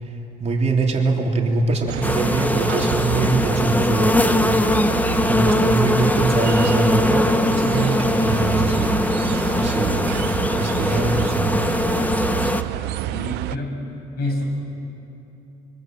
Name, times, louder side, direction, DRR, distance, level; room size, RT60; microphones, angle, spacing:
voice 1, 0.0-9.0 9.3-10.3 10.6-11.6, right 3 dB, 40° right, 0 dB, 3.3 m, -23 dB
sound 1, 1.9-13.6, right 17 dB, 80° right, 0.5 m, -28 dB
sound 2, 2.0-12.6, left 1 dB, 10° left, 0.9 m, -21 dB
voice 2, 12.7-13.9 14.2-14.4, left 1 dB, 65° left, 1 dB, 7.0 m, -28 dB
25.5 x 23.5 x 7.6 m, 2.9 s
cardioid pair, 110°, 17 cm